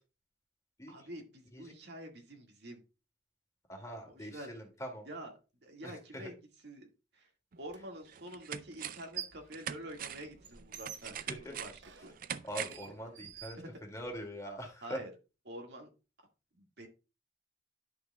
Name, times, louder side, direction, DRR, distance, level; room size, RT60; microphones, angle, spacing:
voice 1, 0.9-2.8 4.1-4.5 5.1-5.3 5.6-6.4 6.6-6.9 7.1-7.3 7.6-12.1 13.2-13.3 13.6-13.7 14.8-15.1 15.5-15.9 16.6-16.9, right 1 dB, 70° right, 3 dB, 1.8 m, -47 dB
voice 2, 3.7-5.1 5.8-6.3 11.3-11.6 12.4-15.0, equal, 20° left, 1 dB, 2.1 m, -43 dB
sound 1, 7.5-7.6 8.1-9.2 9.5-12.9 13.2-13.3, right 9 dB, 55° right, 0.5 m, -42 dB
sound 2, 7.7-7.8 8.8-9.5 9.9-14.2, right 9 dB, 90° right, 1.0 m, -48 dB
11.0 x 6.6 x 2.2 m, 0.31 s
head